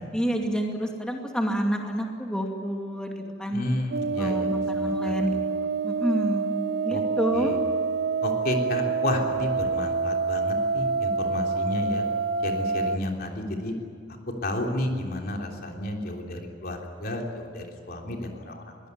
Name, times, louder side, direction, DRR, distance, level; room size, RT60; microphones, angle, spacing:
voice 1, 0.1-3.6 4.2-5.3 5.8-7.5, equal, 5° left, 1 dB, 2.4 m, -28 dB
voice 2, 3.5-4.5 4.7-5.4 6.9-7.0 7.3-7.6 8.2-12.0 12.4-13.7 14.4-18.8, left 1 dB, 60° left, 1 dB, 3.5 m, -31 dB
sound 1, 3.9-13.0, right 4 dB, 65° right, 0.7 m, -27 dB
22.0 x 18.0 x 9.6 m, 2.3 s
head